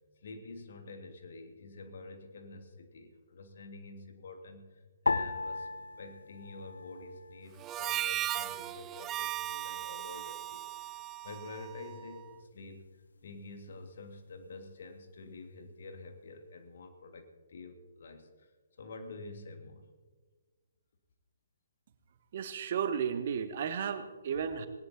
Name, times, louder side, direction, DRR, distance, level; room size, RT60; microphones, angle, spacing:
voice 1, 0.2-5.7 6.0-12.9 13.2-18.5 18.8-19.9, left 3 dB, 50° left, 5 dB, 1.8 m, -48 dB
sound 1, 5.1-7.6 7.8-8.7 9.4-9.8, left 3 dB, 65° left, 0.7 m, -36 dB
Harmonica, 7.6-12.2, right 14 dB, 20° right, 0.3 m, -37 dB
voice 2, 22.3-24.7, right 7 dB, 40° right, 10 dB, 1.0 m, -33 dB
20.0 x 18.0 x 2.8 m, 1.4 s
figure-of-eight pair, 130°, 0 cm